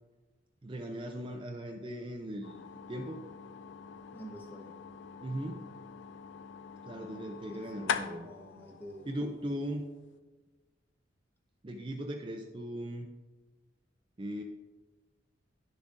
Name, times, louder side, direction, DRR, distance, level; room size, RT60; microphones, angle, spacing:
voice 1, 0.6-2.6 2.9-3.2 5.2-5.7 6.8-8.3 9.1-9.8 11.6-13.1 14.2-14.4, equal, 25° right, 3 dB, 0.5 m, -38 dB
sound 1, 2.4-10.2, left 6 dB, 65° left, 0.4 m, -42 dB
voice 2, 4.1-4.8 7.4-9.1 9.5-9.6, right 1 dB, 10° left, 1 dB, 1.0 m, -49 dB
11.0 x 7.1 x 2.5 m, 1.2 s
head